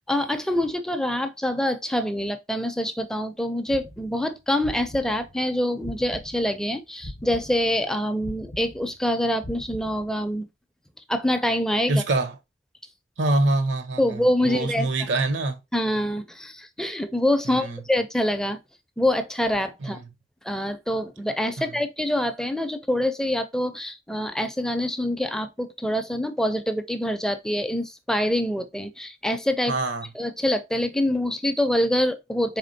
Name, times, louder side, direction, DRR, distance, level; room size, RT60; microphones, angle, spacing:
voice 1, 0.1-10.5 11.1-12.0 14.0-14.9 15.7-18.6 19.0-20.0 20.4-29.7 30.2-32.6, left 1 dB, 5° left, 0.4 m, -25 dB
sound 1, 3.7-6.6 7.0-10.3, left 1 dB, 45° left, 0.6 m, -41 dB
voice 2, 11.9-12.4 13.2-15.6 17.4-17.8 19.8-20.0 21.6-21.7 29.7-30.1, right 2 dB, 75° right, 0.7 m, -25 dB
4.2 x 3.4 x 2.6 m
head